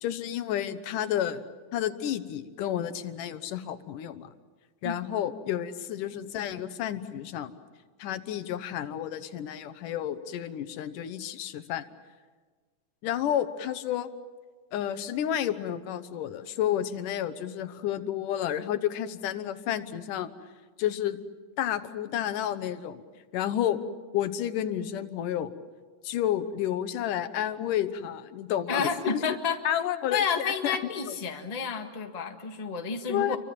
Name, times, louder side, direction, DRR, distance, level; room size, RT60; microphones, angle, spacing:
voice 1, 0.0-1.4 1.7-4.3 4.8-7.5 8.0-11.8 13.0-14.1 14.7-20.3 20.8-21.2 21.6-23.0 23.3-23.8 24.1-25.5 26.0-29.2 29.6-30.8 31.1-31.2 33.1-33.4, left 11 dB, 85° left, 12 dB, 2.6 m, -31 dB
voice 2, 28.7-29.6 30.1-33.4, left 5 dB, 20° left, 4 dB, 1.1 m, -30 dB
29.5 x 24.0 x 7.6 m, 1.4 s
omnidirectional pair, 3.7 m